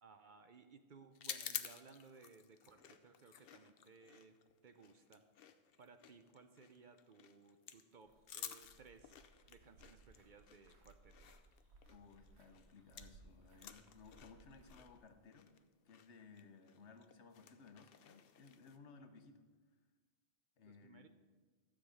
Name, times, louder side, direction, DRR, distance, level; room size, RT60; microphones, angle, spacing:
voice 1, 0.0-4.4 4.6-5.2 5.8-9.2 9.5-11.3 20.6-21.1, right 4 dB, 50° right, 8 dB, 0.7 m, -61 dB
sound 1, 1.1-13.2 13.5-18.8, left 8 dB, 60° left, 0.8 m, -52 dB
sound 2, 8.1-15.0, right 3 dB, 70° right, 1.4 m, -65 dB
voice 2, 11.9-15.5 15.8-19.5 20.6-21.1, left 4 dB, 80° left, 7 dB, 1.2 m, -60 dB
12.5 x 7.5 x 5.0 m, 1.4 s
omnidirectional pair, 1.2 m